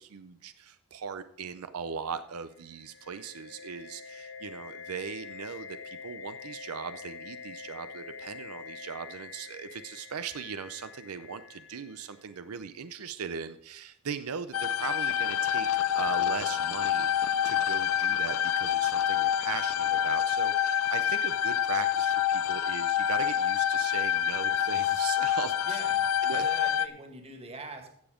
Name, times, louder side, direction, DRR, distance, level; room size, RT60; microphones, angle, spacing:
voice 1, 0.0-15.7 16.0-25.8 26.2-26.5, right 6 dB, 85° right, 11 dB, 0.6 m, -39 dB
sound 1, 2.5-12.4, left 5 dB, 50° left, 2.4 m, -46 dB
sound 2, 14.5-26.9, left 10 dB, 80° left, 0.6 m, -27 dB
voice 2, 25.6-27.9, right 3 dB, 30° right, 5 dB, 2.0 m, -43 dB
15.0 x 7.0 x 5.0 m, 0.73 s
head